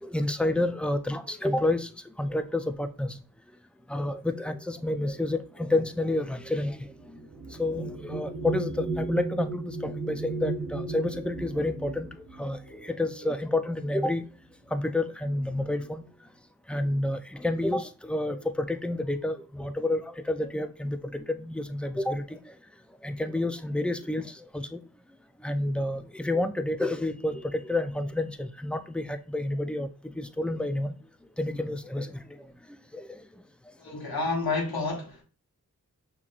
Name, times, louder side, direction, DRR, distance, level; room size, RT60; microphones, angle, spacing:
voice 1, 0.0-3.2 3.9-7.2 7.5-14.3 14.7-16.0 16.7-22.6 23.0-24.8 25.4-31.0 31.4-33.2, left 1 dB, 5° left, 0.4 m, -30 dB
sound 1, 5.0-13.9 14.8-15.0 15.3-15.9, right 3 dB, 80° right, 0.9 m, -36 dB
voice 2, 33.8-35.2, left 3 dB, 90° left, 1.3 m, -29 dB
5.7 x 2.9 x 2.5 m
wide cardioid pair, 50°, 35 cm